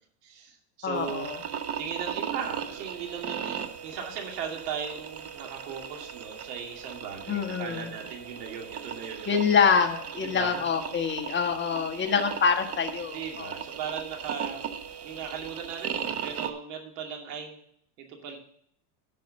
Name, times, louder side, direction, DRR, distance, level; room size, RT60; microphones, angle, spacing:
voice 1, 0.2-1.3 1.8-9.4 10.2-10.6 13.1-14.7 15.0-17.6 18.1-18.4, right 7 dB, 70° right, 2 dB, 2.6 m, -38 dB
voice 2, 0.8-1.4 7.3-7.9 9.3-13.5, left 6 dB, 20° left, 5 dB, 1.3 m, -26 dB
sound 1, 0.9-16.5, right 8 dB, 30° right, 0.8 m, -37 dB
10.0 x 5.5 x 6.4 m, 0.66 s
hypercardioid pair, 110°, 49 cm